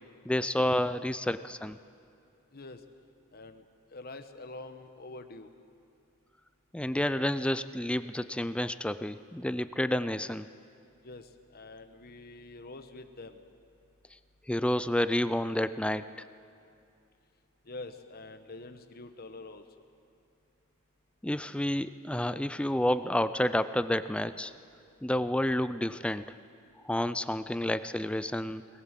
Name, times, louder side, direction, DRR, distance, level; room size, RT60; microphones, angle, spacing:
voice 1, 0.3-1.8 6.7-10.5 14.5-16.1 21.2-24.5 25.0-26.3 26.8-28.7, left 1 dB, 5° left, 13 dB, 0.4 m, -30 dB
voice 2, 3.3-3.6 3.9-5.5 11.0-13.4 17.6-19.6, left 2 dB, 45° left, 7 dB, 1.1 m, -46 dB
21.0 x 19.0 x 7.5 m, 2.5 s
head